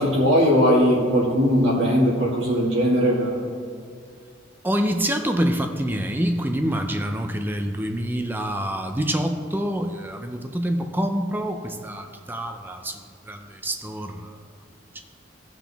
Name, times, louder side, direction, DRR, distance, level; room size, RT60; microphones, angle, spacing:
voice 1, 0.0-3.4, equal, 85° right, -7 dB, 2.1 m, -19 dB
voice 2, 4.6-13.0 13.3-14.4 14.9-15.0, equal, 10° right, 5 dB, 0.5 m, -26 dB
17.0 x 5.9 x 3.5 m, 2.2 s
head